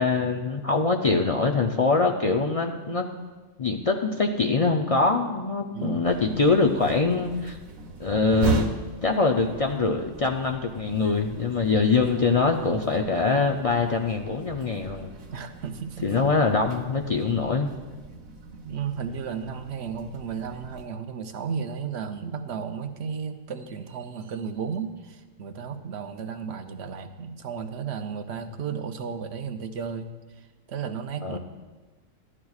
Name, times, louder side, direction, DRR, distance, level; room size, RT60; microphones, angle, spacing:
voice 1, 0.0-3.1 3.6-7.6 8.0-8.7 9.0-15.1 16.0-17.7 31.2-31.4, left 4 dB, 60° left, 2 dB, 0.3 m, -23 dB
voice 2, 5.7-6.2 15.3-16.2 18.6-31.4, right 6 dB, 60° right, 7 dB, 0.9 m, -34 dB
sound 1, 6.0-20.9, right 3 dB, 90° right, 1.3 m, -37 dB
13.5 x 11.0 x 2.4 m, 1.3 s
omnidirectional pair, 1.4 m